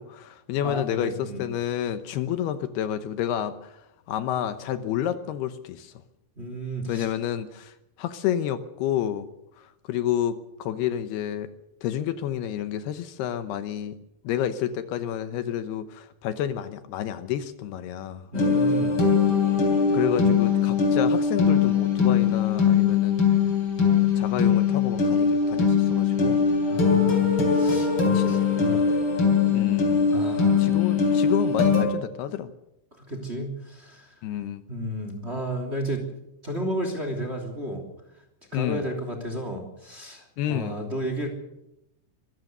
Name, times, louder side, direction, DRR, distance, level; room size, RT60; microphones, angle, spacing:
voice 1, 0.0-3.7 4.1-5.9 6.9-9.3 9.6-11.5 11.8-13.9 14.2-18.3 19.9-23.2 23.8-26.4 28.1-28.3 29.5-30.1 30.6-32.5 34.2-34.6 38.5-38.9 40.4-40.8, left 10 dB, 75° left, 11 dB, 2.9 m, -30 dB
voice 2, 0.6-1.4 6.4-7.1 18.3-18.9 26.7-28.8 30.1-30.6 33.0-34.2 34.7-36.1 36.4-37.8 38.5-41.3, right 1 dB, 15° right, 4 dB, 2.7 m, -32 dB
sound 1, 18.3-31.8, left 6 dB, 30° left, 3.8 m, -21 dB
24.5 x 15.5 x 6.8 m, 0.84 s
omnidirectional pair, 4.9 m